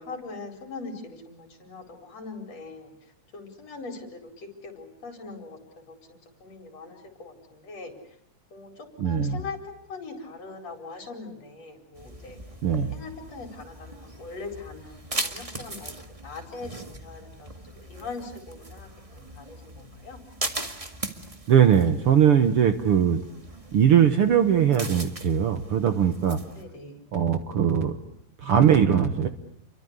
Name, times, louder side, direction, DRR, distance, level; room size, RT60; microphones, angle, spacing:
voice 1, 0.0-2.9 3.3-8.2 8.5-12.4 12.9-15.9 16.2-20.2 26.5-27.1, left 3 dB, 55° left, 5 dB, 5.7 m, -41 dB
voice 2, 9.0-9.4 12.6-12.9 21.5-23.2 23.7-26.4 27.1-27.9 28.4-29.3, right 8 dB, 55° right, 8 dB, 1.9 m, -20 dB
sound 1, 11.9-26.6, right 2 dB, 15° right, 1.4 m, -39 dB
29.5 x 23.5 x 8.2 m, 0.71 s
omnidirectional pair, 3.4 m